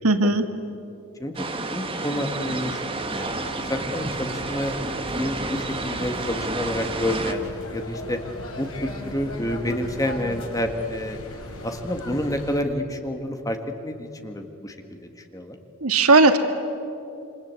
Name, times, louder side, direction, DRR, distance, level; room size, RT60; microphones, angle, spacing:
voice 1, 0.0-0.5 15.8-16.4, right 3 dB, 90° right, 7 dB, 1.9 m, -16 dB
voice 2, 1.2-3.4 3.7-4.7 5.1-8.2 8.6-11.2 11.6-13.6 13.8-15.6, left 1 dB, 15° left, 5 dB, 1.7 m, -29 dB
sound 1, 1.3-7.3, right 2 dB, 25° right, 1.4 m, -30 dB
sound 2, 3.1-12.6, left 1 dB, 80° left, 5.0 m, -38 dB
27.5 x 25.5 x 8.4 m, 2.9 s
head